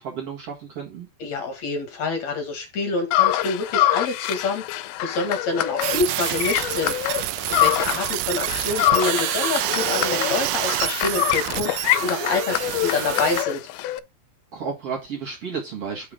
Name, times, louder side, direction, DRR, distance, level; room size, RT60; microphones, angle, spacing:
voice 1, 0.0-1.1 14.5-16.1, right 6 dB, 50° right, 2.2 m, -32 dB
voice 2, 1.2-7.0 7.5-13.7, left 3 dB, 55° left, 2.5 m, -27 dB
sound 1, 3.1-8.2 8.5-14.0, left 14 dB, 90° left, 2.5 m, -25 dB
sound 2, 5.8-13.4, right 16 dB, 80° right, 2.0 m, -27 dB
6.0 x 5.7 x 5.0 m
omnidirectional pair, 4.3 m